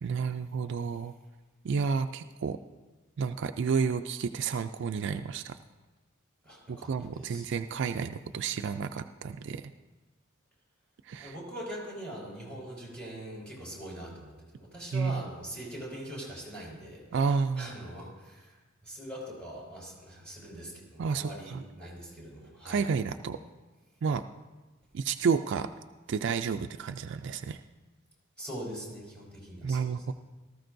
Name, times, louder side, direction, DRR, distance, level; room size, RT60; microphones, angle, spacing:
voice 1, 0.0-1.1 1.6-2.6 3.2-5.6 6.7-9.7 11.1-11.4 14.9-15.3 17.1-17.8 21.0-21.6 22.7-23.4 24.0-24.2 24.9-25.7 26.1-27.6 29.6-30.1, right 5 dB, 55° right, 8 dB, 0.3 m, -31 dB
voice 2, 6.4-7.5 11.2-17.0 17.6-18.5 18.8-22.8 28.4-29.9, right 1 dB, 5° left, -4 dB, 4.3 m, -42 dB
18.5 x 14.0 x 2.6 m, 1.2 s
head